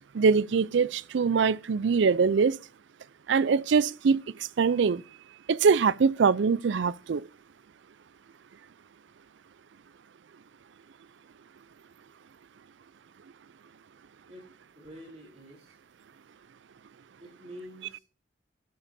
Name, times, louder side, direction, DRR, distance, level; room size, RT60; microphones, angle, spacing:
voice 1, 0.1-2.6 3.3-5.0 5.5-7.3, right 5 dB, 65° right, 0.4 m, -23 dB
voice 2, 14.3-15.8 17.2-18.0, equal, 30° right, 3.3 m, -47 dB
13.0 x 12.0 x 2.7 m
head